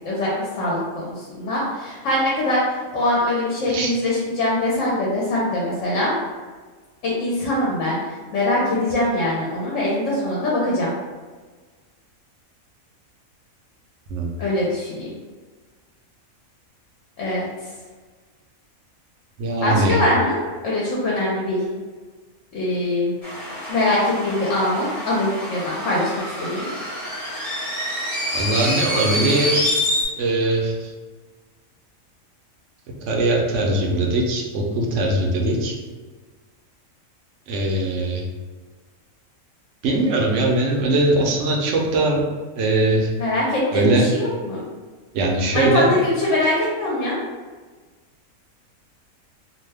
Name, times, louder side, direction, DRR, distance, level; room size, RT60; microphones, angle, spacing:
voice 1, 0.6-6.2 7.0-8.0 8.3-10.9 14.4-15.1 17.2-17.5 19.6-20.4 20.6-21.6 22.5-23.1 23.7-26.1 26.4-26.7 43.2-44.6 45.5-47.2, left 1 dB, 65° left, -5 dB, 1.0 m, -22 dB
voice 2, 19.4-20.0 28.3-29.9 30.2-30.9 33.0-35.7 37.5-38.2 39.8-42.2 42.6-43.1 43.7-44.1 45.1-45.9, right 2 dB, 65° right, 0 dB, 0.9 m, -21 dB
sound 1, 23.2-30.0, left 1 dB, 30° left, 0.9 m, -27 dB
2.7 x 2.2 x 3.3 m, 1.4 s
omnidirectional pair, 1.4 m